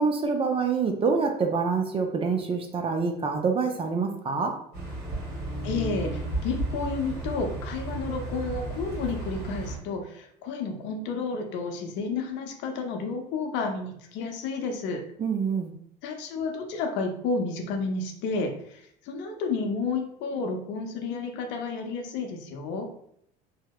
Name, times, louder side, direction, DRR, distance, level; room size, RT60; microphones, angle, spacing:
voice 1, 0.0-4.6 15.2-15.7, right 5 dB, 30° right, 5 dB, 0.4 m, -26 dB
sound 1, 4.7-9.8, right 2 dB, 50° right, 1.2 m, -33 dB
voice 2, 5.6-15.0 16.0-22.9, left 4 dB, 65° left, 3 dB, 0.6 m, -31 dB
2.7 x 2.0 x 2.2 m, 0.69 s
supercardioid pair, 85°, 20 cm